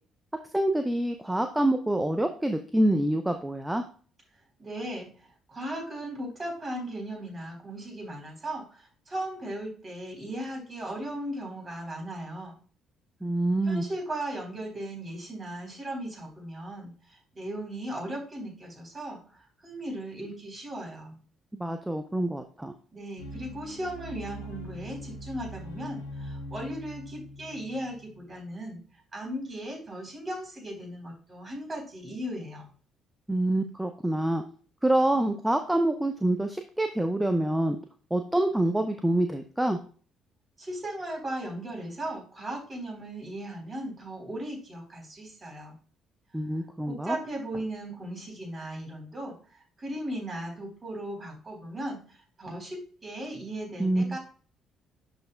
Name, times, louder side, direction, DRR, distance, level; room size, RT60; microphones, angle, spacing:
voice 1, 0.5-3.8 13.2-13.9 21.5-22.7 33.3-34.4 34.8-37.8 38.1-39.8 46.3-47.2 53.8-54.2, right 1 dB, 10° right, 6 dB, 0.7 m, -26 dB
voice 2, 4.6-5.1 5.5-12.6 13.6-21.2 22.9-28.8 29.1-32.7 40.6-45.7 46.9-54.2, right 1 dB, 30° right, 0 dB, 3.8 m, -37 dB
sound 1, 23.2-28.5, equal, 75° left, 1.1 m, -42 dB
11.5 x 4.2 x 2.3 m, 0.40 s
figure-of-eight pair, 45°, 0 cm